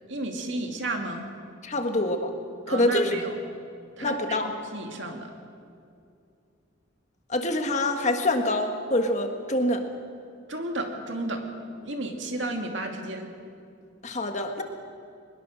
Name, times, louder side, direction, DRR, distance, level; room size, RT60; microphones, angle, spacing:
voice 1, 0.1-1.3 2.7-3.3 4.0-5.3 10.5-11.6 11.8-13.3, right 2 dB, 65° right, 3 dB, 2.4 m, -33 dB
voice 2, 1.6-2.3 2.7-3.2 4.0-4.5 7.3-9.8 14.0-14.6, left 1 dB, 35° left, 5 dB, 1.6 m, -25 dB
22.5 x 21.0 x 6.4 m, 2.4 s
head